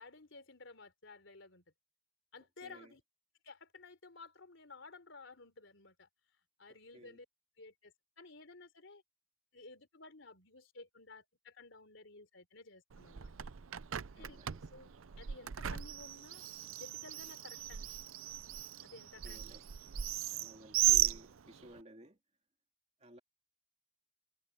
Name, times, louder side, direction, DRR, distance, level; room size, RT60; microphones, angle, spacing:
voice 1, 0.0-1.6 2.3-3.0 3.4-6.1 6.6-7.3 7.6-9.0 9.5-13.3 14.2-14.4 14.7-16.4 16.8-17.9 18.8-19.4, left 3 dB, 65° left, 3.9 m, -55 dB
voice 2, 2.6-2.9 6.9-7.2 14.2-14.6 19.2-19.7 20.3-22.2 23.0-23.2, right 1 dB, 30° right, 3.0 m, -56 dB
Bird, 12.9-21.8, right 12 dB, 80° right, 0.6 m, -36 dB
head